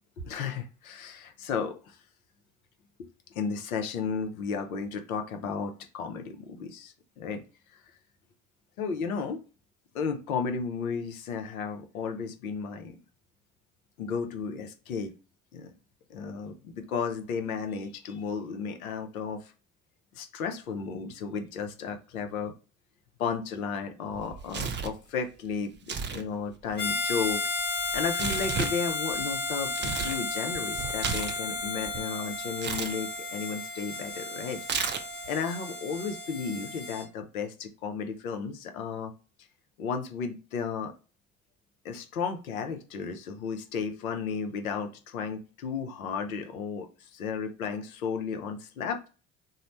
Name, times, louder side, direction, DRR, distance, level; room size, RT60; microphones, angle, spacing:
voice 1, 0.2-2.0 3.3-7.4 8.8-9.4 9.9-13.0 14.0-15.1 15.5-15.7 16.1-19.4 20.1-22.5 23.2-27.4 27.9-34.6 35.3-39.1 39.8-40.9 41.8-46.9 47.1-49.1, left 5 dB, 85° left, 6 dB, 0.7 m, -33 dB
Tearing, 24.1-25.0 25.8-26.2 26.5-30.2 30.5-32.0 32.6-32.9 34.6-35.3, right 6 dB, 25° right, 0.5 m, -34 dB
Harmonica, 26.8-37.1, left 3 dB, 25° left, 1.1 m, -33 dB
3.1 x 2.1 x 3.9 m, 0.34 s
hypercardioid pair, 55°, 41 cm